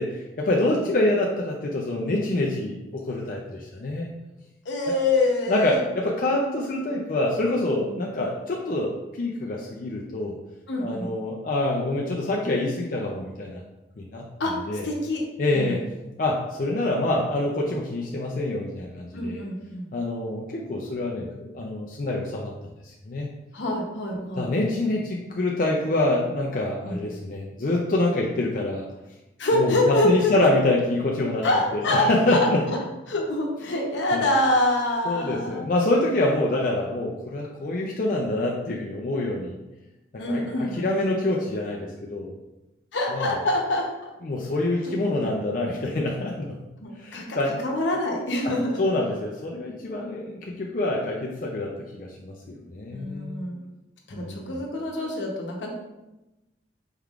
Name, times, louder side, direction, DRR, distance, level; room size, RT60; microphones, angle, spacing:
voice 1, 0.0-4.1 5.5-10.4 10.8-13.6 14.0-14.2 14.7-14.9 15.4-15.8 16.2-19.4 19.9-22.5 22.8-23.3 24.4-28.9 29.5-31.5 31.7-32.8 34.1-34.2 35.0-39.6 40.3-42.3 43.1-43.3 44.2-46.6 47.0-47.6 48.4-48.5 48.8-53.4 54.1-54.5, left 2 dB, 45° left, -2 dB, 0.4 m, -26 dB
voice 2, 4.6-5.8 7.9-8.0 10.7-11.1 14.4-14.6 14.8-15.2 15.5-15.8 19.1-19.8 23.5-24.5 26.8-27.0 29.4-30.5 31.4-32.5 33.1-35.7 40.2-41.1 42.9-44.1 44.9-45.0 46.8-48.8 52.9-53.6 54.1-55.7, left 1 dB, 80° left, -1 dB, 0.8 m, -25 dB
4.4 x 3.5 x 2.4 m, 1.0 s
head